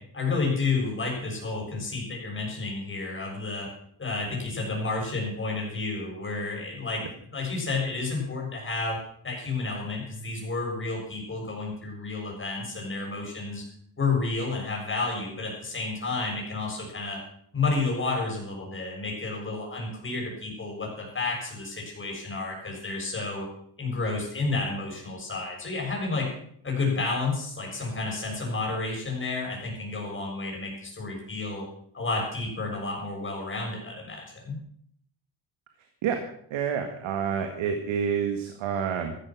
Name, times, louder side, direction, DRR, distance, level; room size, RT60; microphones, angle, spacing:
voice 1, 0.1-3.7 4.0-7.0 7.3-9.0 9.2-13.6 14.0-17.2 17.5-23.5 23.8-26.3 26.6-31.6 31.9-34.6, left 3 dB, 25° left, -1 dB, 7.2 m, -31 dB
voice 2, 36.5-39.2, right 7 dB, 90° right, 5 dB, 2.0 m, -28 dB
14.5 x 12.5 x 6.1 m, 0.67 s
cardioid pair, 135°, 45 cm